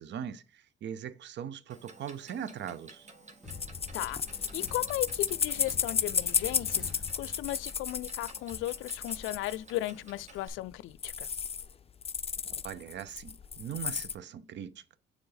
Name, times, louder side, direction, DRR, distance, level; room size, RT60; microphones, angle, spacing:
voice 1, 0.0-3.1 12.6-14.8, right 9 dB, 65° right, 0.7 m, -40 dB
Clock, 1.7-10.5, right 3 dB, 35° right, 1.5 m, -54 dB
sound 1, 3.4-7.9, left 3 dB, 5° right, 2.4 m, -48 dB
sound 2, 3.5-9.9 10.4-10.5 10.7-10.8 11.0-11.7 12.0-14.1, left 7 dB, 30° left, 0.5 m, -33 dB
voice 2, 4.5-6.9 7.2-11.3, left 16 dB, 90° left, 0.4 m, -36 dB
6.8 x 4.6 x 4.0 m
cardioid pair, 90°, 20 cm